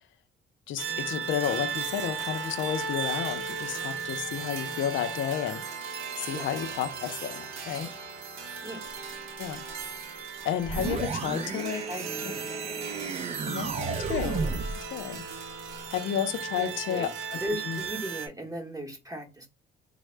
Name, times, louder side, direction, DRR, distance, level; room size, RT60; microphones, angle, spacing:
voice 1, 0.7-5.6 6.2-7.9 9.4-9.6 10.4-11.9 12.2-12.3 13.5-14.4 14.8-15.3 15.9-17.4 17.6-17.8, left 10 dB, 75° left, 0.5 m, -32 dB
sound 1, 0.8-18.3, right 6 dB, 85° right, 0.7 m, -36 dB
sound 2, 10.6-14.8, right 4 dB, 35° right, 0.4 m, -32 dB
voice 2, 11.7-12.5 16.6-17.1 17.4-19.5, equal, 20° right, 0.9 m, -37 dB
3.4 x 2.0 x 3.2 m
cardioid pair, 90°, 20 cm